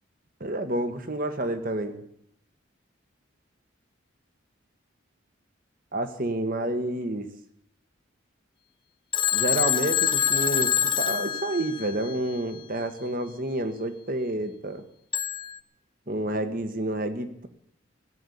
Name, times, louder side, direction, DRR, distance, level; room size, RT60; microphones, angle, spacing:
voice 1, 0.4-2.0 5.9-7.3 9.3-14.8 16.1-17.5, right 1 dB, 45° right, 8 dB, 1.6 m, -29 dB
Telephone, 9.1-12.2 15.1-15.6, left 9 dB, 25° left, 0.6 m, -25 dB
17.0 x 8.3 x 10.0 m, 0.71 s
head